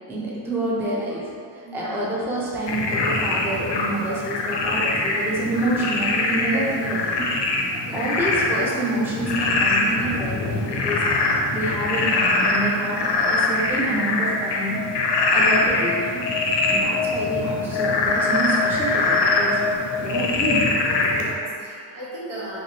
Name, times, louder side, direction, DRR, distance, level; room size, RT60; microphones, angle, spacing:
voice 1, 0.1-7.1 7.9-11.0 11.5-14.8 15.3-16.2 16.7-19.6 20.0-20.6, right 1 dB, 5° right, -5 dB, 0.4 m, -27 dB
voice 2, 1.6-2.0 5.5-5.7 6.5-6.6 7.6-8.1 16.7-17.1 19.7-20.2 21.1-22.6, right 1 dB, 80° right, -8 dB, 1.2 m, -38 dB
Frog, 2.7-21.3, left 3 dB, 60° left, 0.5 m, -23 dB
3.1 x 2.9 x 2.8 m, 2.2 s
wide cardioid pair, 125°, 49 cm